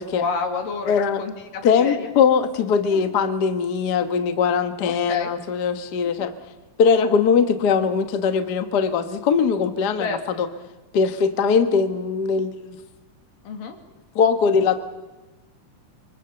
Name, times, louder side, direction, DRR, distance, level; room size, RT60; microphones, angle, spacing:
voice 1, 0.1-2.1 2.9-3.1 4.8-5.3 6.2-6.3 10.0-10.5 13.5-13.8, left 5 dB, 90° left, 5 dB, 3.9 m, -30 dB
voice 2, 0.9-1.2 1.6-6.3 6.8-10.1 10.4-10.5 10.9-12.7 14.1-14.8, left 6 dB, 65° left, 8 dB, 1.0 m, -20 dB
27.0 x 24.0 x 6.9 m, 1.1 s
omnidirectional pair, 3.8 m